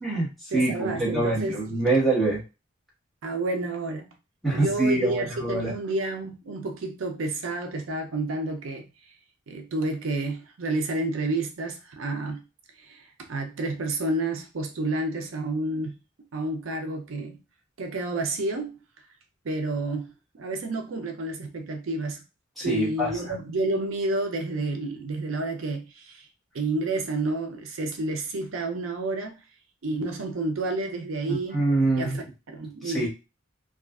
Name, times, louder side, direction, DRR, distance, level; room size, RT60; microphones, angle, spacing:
voice 1, 0.0-2.4 4.4-5.7 22.6-23.1 31.3-32.2 32.8-33.1, right 2 dB, ahead, 1.1 m, -25 dB
voice 2, 0.5-1.9 3.2-4.1 4.5-8.9 9.5-12.4 12.8-16.0 16.3-17.4 17.8-18.8 19.4-22.2 22.6-26.3 26.5-29.4 29.8-31.7 32.0-33.1, right 2 dB, 80° right, 0.5 m, -30 dB
2.4 x 2.3 x 2.3 m
head